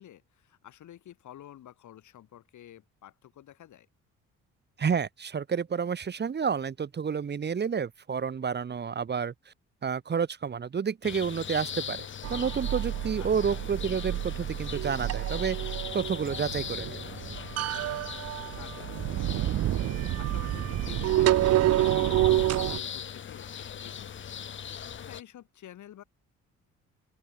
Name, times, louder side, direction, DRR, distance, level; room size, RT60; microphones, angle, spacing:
voice 1, 0.0-3.9 13.2-13.6 18.5-19.6 19.9-26.0, left 12 dB, 75° left, 6.9 m, -50 dB
voice 2, 4.8-9.5 9.8-15.6 15.9-17.0, right 6 dB, 35° right, 1.1 m, -30 dB
sound 1, 11.0-25.2, left 8 dB, 40° left, 0.8 m, -40 dB
sound 2, 12.2-22.8, right 13 dB, 60° right, 0.5 m, -28 dB
open air
cardioid pair, 90°, 30 cm